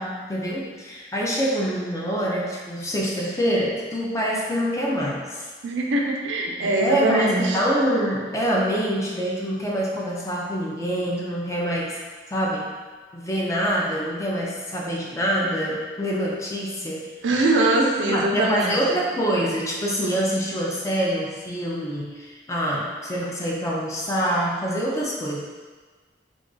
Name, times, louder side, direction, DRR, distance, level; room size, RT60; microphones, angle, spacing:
voice 1, 0.0-5.5 6.6-12.0 12.3-12.7 13.1-17.1 18.1-25.4, equal, 15° left, -3 dB, 0.4 m, -25 dB
voice 2, 5.6-7.6 17.2-18.8, right 2 dB, 85° right, 0 dB, 0.5 m, -22 dB
2.4 x 2.3 x 3.7 m, 1.4 s
head